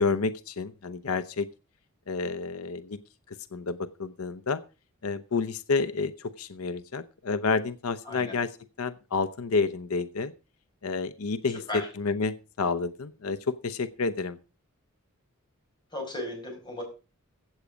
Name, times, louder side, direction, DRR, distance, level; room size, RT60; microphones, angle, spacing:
voice 1, 0.0-1.5 2.1-3.0 3.3-4.6 5.0-10.3 10.8-14.4, left 4 dB, 85° left, 13 dB, 0.7 m, -30 dB
voice 2, 15.9-16.8, left 1 dB, 20° left, 2 dB, 5.4 m, -35 dB
15.5 x 8.2 x 5.1 m, 0.33 s
head